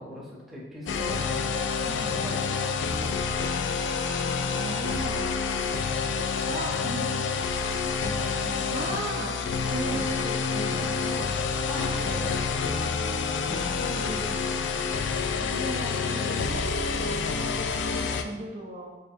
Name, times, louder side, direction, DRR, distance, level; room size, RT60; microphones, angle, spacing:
voice 1, 0.0-2.7 3.0-3.3 11.7-13.1 13.4-14.8, equal, ahead, -5 dB, 0.7 m, -40 dB
sound 1, 0.9-18.2, left 5 dB, 85° left, 0.3 m, -28 dB
voice 2, 4.6-5.3 6.1-7.2 7.8-11.4 13.8-14.3 15.4-17.1 17.4-19.0, right 2 dB, 45° right, -1 dB, 0.5 m, -37 dB
4.1 x 3.2 x 2.7 m, 1.3 s
head